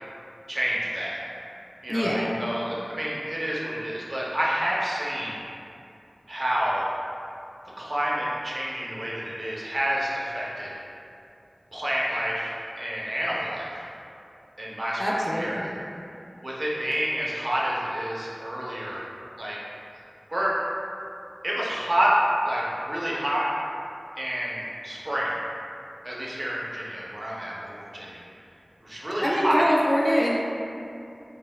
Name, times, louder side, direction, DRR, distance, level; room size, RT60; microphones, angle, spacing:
voice 1, 0.5-1.2 1.8-5.4 6.3-6.8 7.8-10.7 11.7-13.9 14.6-15.7 16.4-19.0 19.4-19.6 20.3-20.6 21.4-22.1 22.4-23.5 24.2-25.3 26.0-28.2 28.8-29.6, equal, 45° right, -6 dB, 0.5 m, -29 dB
voice 2, 1.9-2.3 15.0-15.7 29.2-30.4, equal, 10° left, -5 dB, 0.3 m, -24 dB
3.1 x 2.1 x 2.3 m, 2.6 s
wide cardioid pair, 55°, 0 cm